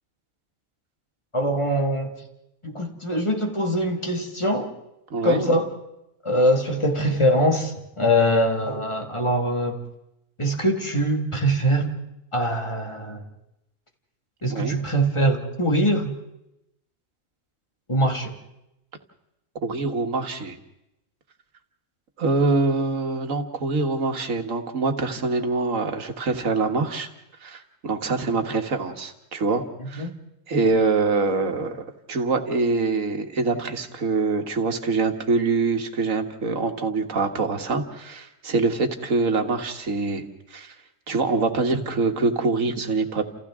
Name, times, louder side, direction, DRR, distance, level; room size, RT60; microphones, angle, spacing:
voice 1, 1.3-2.1 2.6-4.7 5.2-5.7 6.2-9.8 10.4-11.9 12.3-13.2 14.4-16.1 17.9-18.4 29.8-30.2, equal, 20° left, 2 dB, 1.9 m, -23 dB
voice 2, 5.1-5.6 14.5-14.8 19.6-20.6 22.2-27.1 27.4-30.1 30.5-40.2 40.5-40.7 41.1-43.2, right 3 dB, 75° right, 5 dB, 1.9 m, -24 dB
30.0 x 28.0 x 3.7 m, 0.89 s
omnidirectional pair, 1.4 m